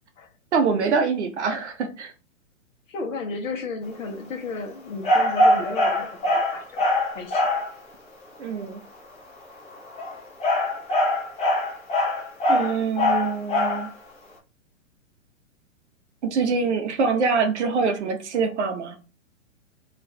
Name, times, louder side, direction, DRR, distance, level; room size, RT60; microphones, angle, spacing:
voice 1, 0.5-2.1 8.4-8.8 12.5-13.9 16.2-19.0, right 5 dB, 60° right, 0.6 m, -24 dB
voice 2, 2.9-7.5, left 3 dB, 75° left, 0.8 m, -34 dB
sound 1, 5.0-7.7 9.8-13.9, left 1 dB, 15° left, 0.7 m, -22 dB
2.5 x 2.4 x 3.1 m
figure-of-eight pair, 120°, 40 cm